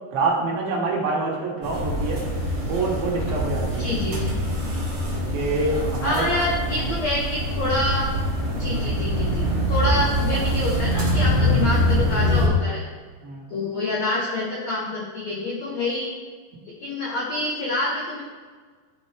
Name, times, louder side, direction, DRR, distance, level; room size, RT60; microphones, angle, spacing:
voice 1, 0.1-2.2 2.6-3.9 5.1-6.3 6.7-6.9 9.9-10.0 13.2-13.5, right 3 dB, 70° right, -2 dB, 2.6 m, -26 dB
sound 1, 1.6-12.5, equal, 85° right, 0.8 m, -24 dB
voice 2, 3.8-4.3 6.0-8.1 8.5-12.8 13.5-16.1 16.8-18.2, left 2 dB, 90° left, -4 dB, 1.5 m, -27 dB
11.0 x 4.2 x 3.2 m, 1.5 s
omnidirectional pair, 4.6 m